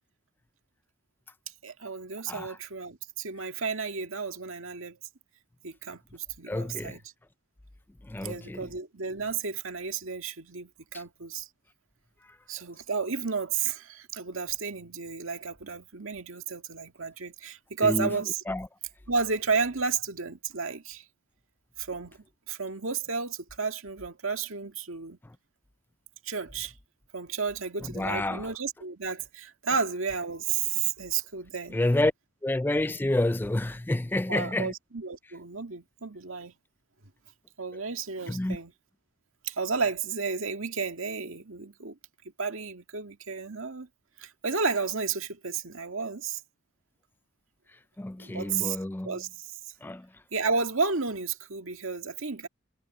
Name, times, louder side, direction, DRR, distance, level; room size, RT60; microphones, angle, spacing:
voice 1, 1.6-5.0 5.6-7.0 8.2-11.5 12.5-18.4 19.1-21.1 21.8-25.2 26.2-26.7 27.1-31.8 34.3-36.5 37.6-38.7 39.4-42.0 42.4-43.9 44.2-46.4 48.2-48.8 49.0-49.7 50.3-52.5, right 5 dB, 80° right, 2.0 m, -32 dB
voice 2, 6.5-7.0 8.1-8.6 10.9-11.0 17.8-18.1 18.5-18.7 27.9-28.5 31.7-32.1 32.4-34.7 38.3-38.6 48.0-49.1 49.8-50.1, left 1 dB, 10° left, 0.3 m, -28 dB
head